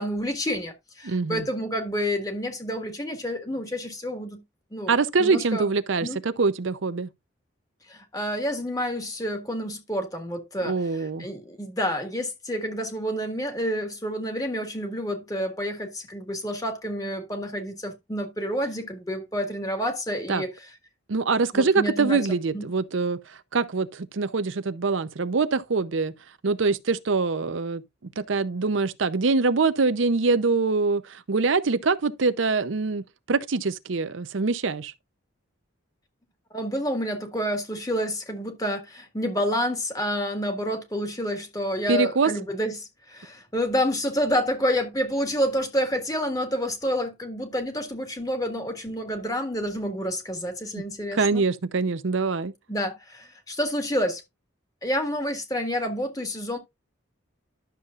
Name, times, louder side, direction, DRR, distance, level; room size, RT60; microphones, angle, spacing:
voice 1, 0.0-4.4 4.7-4.9 5.2-5.7 6.0-6.2 7.9-20.5 21.5-22.2 22.5-22.6 36.5-51.4 52.7-54.2 54.8-56.6, equal, 20° left, 1.7 m, -29 dB
voice 2, 1.0-1.5 4.9-7.1 10.7-11.3 20.3-20.4 21.1-26.1 26.4-27.8 28.2-34.9 41.9-42.3 51.1-52.5, right 4 dB, 75° right, 0.6 m, -24 dB
11.5 x 6.9 x 2.4 m
head